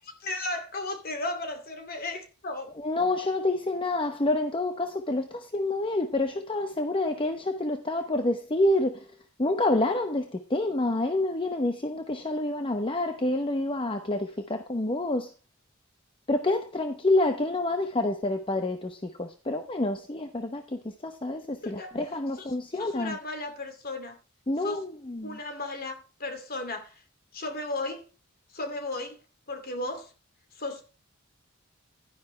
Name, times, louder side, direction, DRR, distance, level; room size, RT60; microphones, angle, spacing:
voice 1, 0.0-2.7 21.6-21.9 22.8-24.2 24.6-24.8 25.2-27.0 27.3-28.0 28.5-29.2 29.5-30.1 30.6-30.8, left 2 dB, 45° left, 2.5 m, -35 dB
voice 2, 2.8-9.1 9.4-15.3 16.3-23.2 24.5-25.4, left 2 dB, 25° left, 0.8 m, -28 dB
12.0 x 10.5 x 3.2 m
head